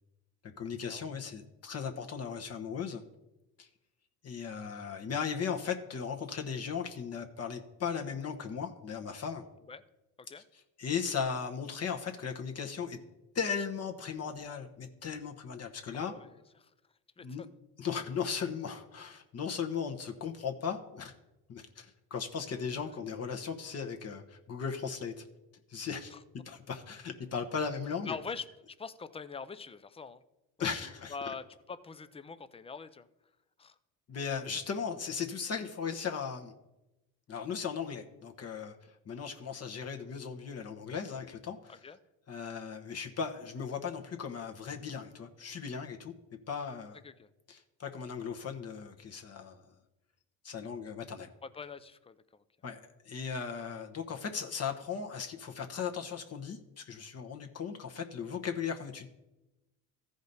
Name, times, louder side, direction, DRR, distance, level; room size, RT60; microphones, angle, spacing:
voice 1, 0.6-3.0 3.6-3.7 4.2-9.4 10.8-13.0 13.3-16.1 17.2-17.4 17.8-21.1 21.5-25.2 25.7-26.1 26.5-28.2 30.6-31.3 34.1-36.5 37.3-41.8 42.3-46.1 46.5-47.0 47.5-49.7 50.4-51.3 52.6-59.1, left 6 dB, 40° left, 3 dB, 1.0 m, -37 dB
voice 2, 16.1-16.7 17.2-17.5 26.1-26.2 28.1-30.2 30.6-33.1 33.6-33.8 41.7-42.0 47.0-47.3 51.4-52.4, left 5 dB, 15° left, 14 dB, 0.5 m, -44 dB
14.0 x 5.1 x 4.0 m, 0.97 s
supercardioid pair, 90°, 40 cm